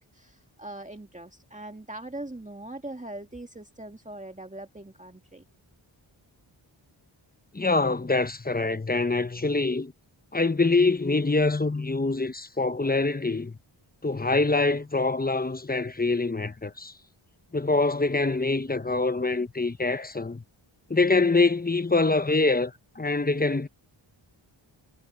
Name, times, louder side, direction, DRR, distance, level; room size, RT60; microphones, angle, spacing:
voice 1, 0.0-5.4, right 1 dB, 15° right, 2.0 m, -41 dB
voice 2, 7.5-9.9 10.3-13.6 14.0-16.9 17.5-20.4 20.9-23.7, left 3 dB, 20° left, 0.9 m, -25 dB
cardioid pair, 55°, 48 cm